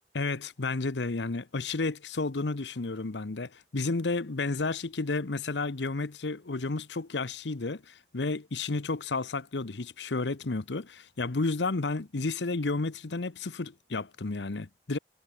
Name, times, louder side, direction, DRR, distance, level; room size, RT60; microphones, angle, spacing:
voice 1, 0.1-15.0, left 3 dB, 85° left, 0.9 m, -32 dB
head